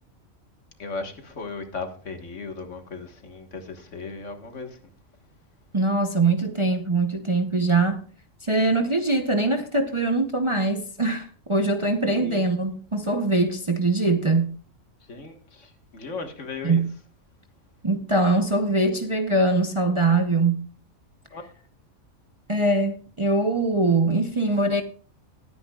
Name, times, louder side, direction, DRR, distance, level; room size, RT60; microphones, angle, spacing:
voice 1, 0.8-4.8 12.1-12.6 15.0-16.8 21.3-21.4, left 4 dB, 65° left, 1.9 m, -36 dB
voice 2, 5.7-8.0 8.4-14.5 16.6-16.9 17.8-20.6 22.5-24.8, right 2 dB, 25° right, 0.8 m, -22 dB
19.5 x 9.6 x 2.4 m
omnidirectional pair, 1.4 m